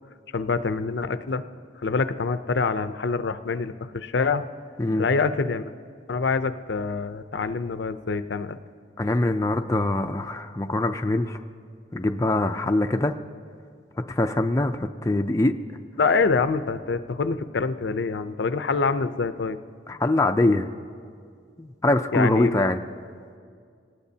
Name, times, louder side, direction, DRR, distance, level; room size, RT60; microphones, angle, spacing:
voice 1, 0.3-1.4 1.8-4.4 5.0-5.7 6.1-8.6 16.0-19.6 22.1-22.6, left 4 dB, 65° left, 11 dB, 0.5 m, -25 dB
voice 2, 9.0-11.4 11.9-13.1 14.1-15.5 19.9-20.7 21.6-22.8, left 2 dB, 15° left, 5 dB, 0.4 m, -23 dB
25.5 x 18.5 x 2.8 m, 2.2 s
head